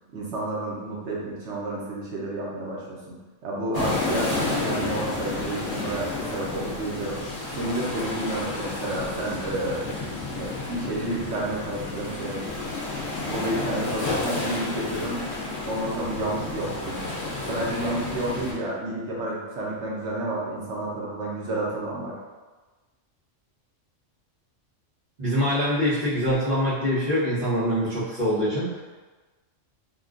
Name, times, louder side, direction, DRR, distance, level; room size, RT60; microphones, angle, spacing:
voice 1, 0.1-3.2 3.4-7.2 7.6-9.9 10.3-12.7 13.2-15.2 15.7-17.1 17.5-22.1, right 1 dB, 70° right, -4 dB, 1.0 m, -30 dB
sound 1, 3.7-18.5, left 2 dB, 50° left, 0.8 m, -31 dB
voice 2, 25.2-28.8, equal, 45° right, -17 dB, 1.2 m, -24 dB
3.6 x 2.3 x 2.4 m, 1.3 s
omnidirectional pair, 1.3 m